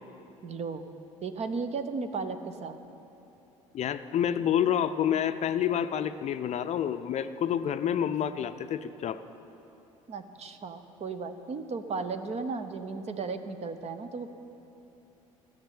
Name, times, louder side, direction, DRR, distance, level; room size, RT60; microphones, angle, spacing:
voice 1, 0.4-0.9 1.2-2.8 10.1-14.3, right 4 dB, 40° right, 9 dB, 0.9 m, -35 dB
voice 2, 3.7-9.2, left 9 dB, 40° left, 11 dB, 0.5 m, -28 dB
14.5 x 6.6 x 8.6 m, 3.0 s
hypercardioid pair, 60°, 17 cm